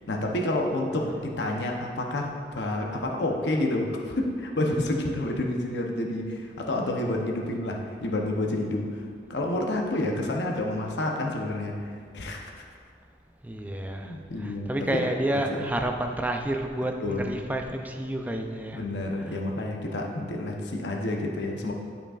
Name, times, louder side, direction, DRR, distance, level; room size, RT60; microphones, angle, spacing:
voice 1, 0.1-9.0 9.3-12.6 14.0-15.1 15.5-15.7 17.0-17.3 18.7-21.7, left 1 dB, 75° left, 1 dB, 0.7 m, -29 dB
voice 2, 13.4-18.9 19.2-19.4, right 1 dB, 10° right, 4 dB, 0.4 m, -30 dB
11.0 x 5.2 x 2.4 m, 2.2 s
head